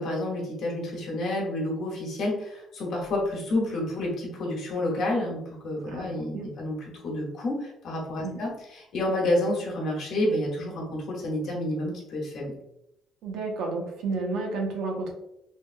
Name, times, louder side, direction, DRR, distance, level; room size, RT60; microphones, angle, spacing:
voice 1, 0.0-6.8 7.0-12.5, left 1 dB, 55° left, -3 dB, 1.0 m, -29 dB
voice 2, 5.8-6.5 8.2-8.4 13.2-15.1, right 3 dB, 80° right, 1 dB, 0.6 m, -31 dB
3.3 x 2.2 x 2.5 m, 0.82 s
cardioid pair, 180°, 0 cm